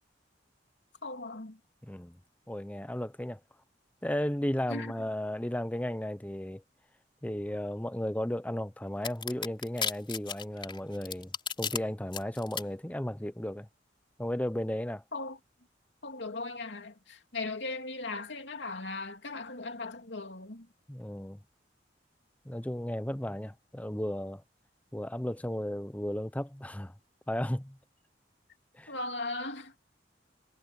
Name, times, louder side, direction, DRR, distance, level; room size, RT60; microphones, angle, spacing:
voice 1, 1.0-1.6 4.7-4.9 15.1-15.4 16.0-20.7 28.9-29.7, left 3 dB, 75° left, 3.0 m, -38 dB
voice 2, 1.8-2.2 2.5-3.4 4.0-6.6 7.2-11.3 11.6-13.7 14.2-15.0 20.9-21.4 22.4-24.4 24.9-26.9 27.3-27.8 28.8-28.9, left 1 dB, 10° left, 0.8 m, -34 dB
sound 1, 9.0-11.8 12.1-12.6, left 6 dB, 30° left, 4.5 m, -33 dB
head